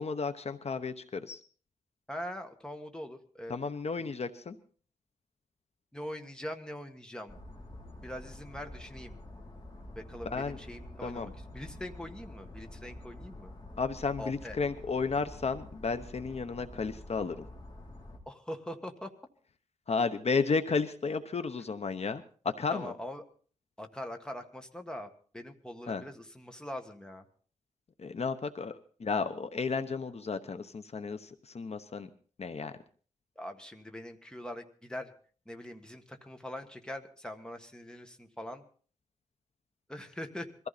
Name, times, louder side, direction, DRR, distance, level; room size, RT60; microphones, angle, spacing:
voice 1, 0.0-1.4 3.5-4.5 10.3-10.6 11.0-11.3 13.8-17.4 19.9-22.9 25.9-26.0 28.0-32.1 32.4-32.7, left 4 dB, 55° left, 10 dB, 1.0 m, -33 dB
voice 2, 2.1-3.5 4.0-4.2 5.9-7.4 8.0-9.2 10.0-13.5 14.2-14.6 18.3-19.1 22.7-23.2 23.8-27.3 33.4-35.1 35.5-38.7 39.9-40.5, left 1 dB, 5° left, 5 dB, 1.6 m, -42 dB
sound 1, 7.3-18.2, left 1 dB, 35° left, 3.4 m, -48 dB
22.5 x 15.0 x 4.2 m, 0.43 s
wide cardioid pair, 145°, 13 cm